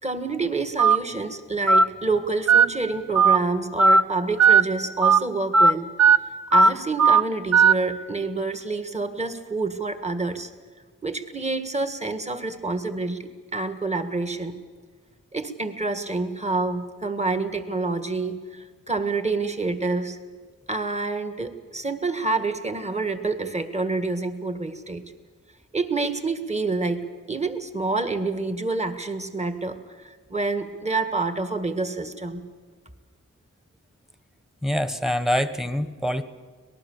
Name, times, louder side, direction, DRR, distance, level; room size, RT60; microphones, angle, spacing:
voice 1, 0.0-5.9 6.5-10.5 11.0-14.6 15.3-20.2 20.7-25.0 25.7-32.4, right 3 dB, 20° right, 9 dB, 1.7 m, -28 dB
Telephone, 0.8-1.0 1.7-1.8 2.5-2.7 3.2-3.4 3.8-4.0 4.4-4.6 5.0-5.2 5.5-5.7 6.0-6.2 6.5-6.7 7.0-7.2 7.5-7.7, right 5 dB, 55° right, 0.9 m, -15 dB
voice 2, 34.6-36.2, equal, ahead, 11 dB, 1.3 m, -25 dB
25.0 x 19.0 x 7.3 m, 1.5 s
wide cardioid pair, 65°, 32 cm